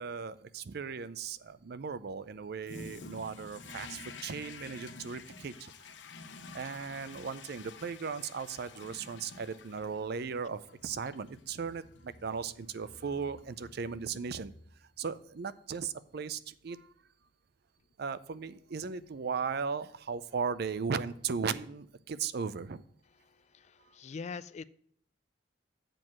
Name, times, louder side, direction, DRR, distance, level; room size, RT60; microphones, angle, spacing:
voice 1, 0.0-5.7 6.5-14.5 15.0-16.9 18.0-22.8, right 5 dB, 60° right, 15 dB, 0.5 m, -37 dB
Toilet flush, 2.6-15.0, left 4 dB, 80° left, 0.9 m, -50 dB
voice 2, 23.5-24.6, left 5 dB, 40° left, 17 dB, 0.3 m, -42 dB
7.7 x 4.7 x 7.2 m, 0.63 s
head